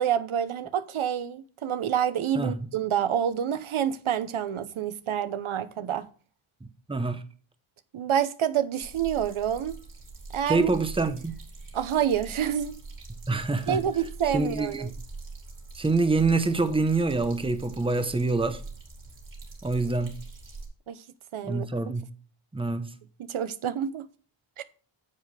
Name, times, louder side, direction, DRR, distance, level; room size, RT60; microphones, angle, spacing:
voice 1, 0.0-6.1 7.9-9.7 10.3-10.7 11.7-12.8 13.7-14.9 20.9-21.0 21.3-21.7 23.2-24.0 24.6-24.7, right 9 dB, 80° right, 1.0 m, -27 dB
voice 2, 2.3-2.7 6.9-7.2 10.5-11.3 13.3-13.8 14.2-14.9 15.7-18.6 19.6-20.2 21.4-22.1 22.5-22.9, right 3 dB, 10° right, 0.9 m, -26 dB
sound 1, 8.8-20.7, right 3 dB, 40° right, 3.0 m, -43 dB
9.7 x 7.4 x 3.4 m
wide cardioid pair, 155°, 48 cm